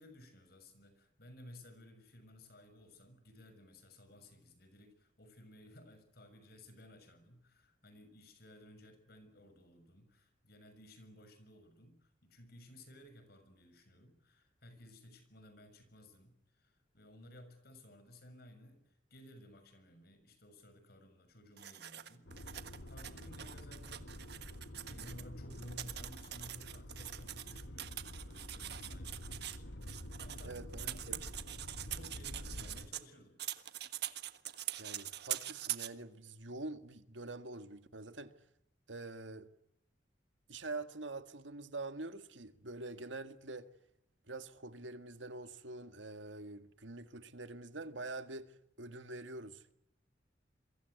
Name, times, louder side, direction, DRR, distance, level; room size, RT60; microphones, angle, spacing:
voice 1, 0.0-24.1 24.9-31.3 31.7-33.4, left 1 dB, 55° left, 6.7 m, -57 dB
sound 1, 21.6-25.2 25.5-33.0 33.4-35.9, right 12 dB, 60° right, 1.5 m, -44 dB
sound 2, 22.3-32.9, left 1 dB, 75° left, 1.8 m, -48 dB
voice 2, 30.4-31.2 34.8-38.3 38.9-39.5 40.5-43.7 44.3-49.7, right 2 dB, 90° right, 1.8 m, -45 dB
28.0 x 23.5 x 8.2 m
head